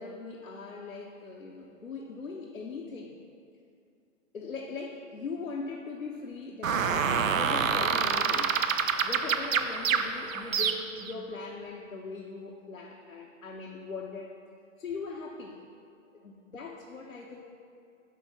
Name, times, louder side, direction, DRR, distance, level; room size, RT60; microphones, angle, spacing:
voice 1, 0.0-3.2 4.3-8.5 9.0-14.3 14.8-15.6 16.1-17.4, left 4 dB, 85° left, -1 dB, 0.9 m, -40 dB
sound 1, 6.6-11.1, right 6 dB, 75° right, 0.7 m, -27 dB
6.1 x 5.8 x 7.0 m, 2.5 s
figure-of-eight pair, 115°, 39 cm